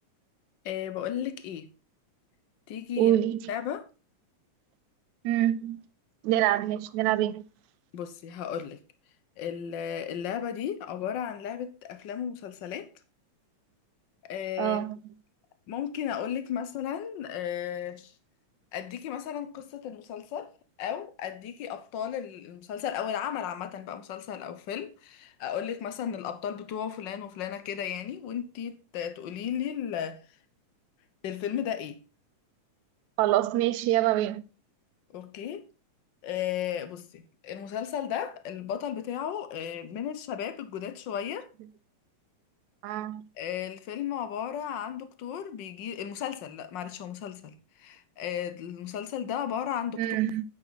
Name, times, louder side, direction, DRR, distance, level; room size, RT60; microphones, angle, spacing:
voice 1, 0.6-1.7 2.7-3.2 3.5-3.9 7.9-8.8 9.4-12.9 14.2-14.8 15.7-18.1 18.7-20.5 20.8-30.2 31.2-32.0 35.1-35.6 36.2-41.5 43.4-50.1, left 9 dB, 65° left, 1.1 m, -34 dB
voice 2, 3.0-3.4 5.2-5.8 6.2-7.4 14.6-15.0 33.2-34.5 42.8-43.2 50.0-50.4, right 13 dB, 80° right, 2.0 m, -25 dB
9.3 x 9.1 x 4.1 m
omnidirectional pair, 3.4 m